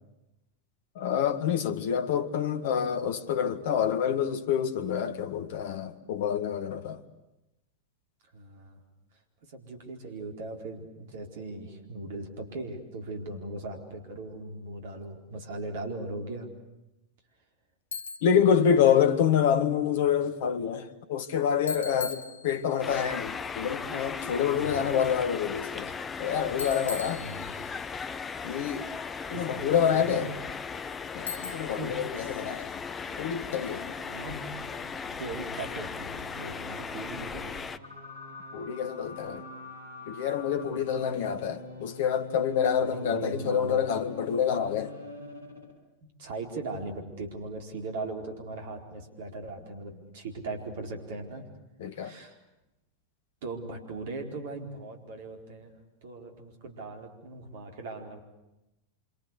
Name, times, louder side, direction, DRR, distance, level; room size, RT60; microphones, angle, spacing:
voice 1, 0.9-7.0 18.2-25.9 26.2-27.2 28.4-28.9 29.3-30.3 31.1-32.8 33.2-33.9 38.5-39.4 40.1-44.9 51.8-52.1, left 8 dB, 55° left, 1.7 m, -27 dB
voice 2, 8.3-8.8 9.5-16.5 24.5-25.0 27.2-27.5 29.3-30.4 31.3-32.3 33.7-34.4 35.2-37.7 42.8-43.9 46.0-51.5 51.9-52.4 53.4-58.2, right 2 dB, 55° right, 4.4 m, -39 dB
Bicycle, 17.9-18.4 21.7-22.9 26.6-27.8 31.3-31.9, left 4 dB, 70° left, 1.0 m, -39 dB
sound 1, 22.8-37.8, left 5 dB, 20° left, 1.0 m, -37 dB
sound 2, 33.1-45.8, equal, 75° right, 5.6 m, -45 dB
27.0 x 25.5 x 8.4 m
figure-of-eight pair, 90°, 0 cm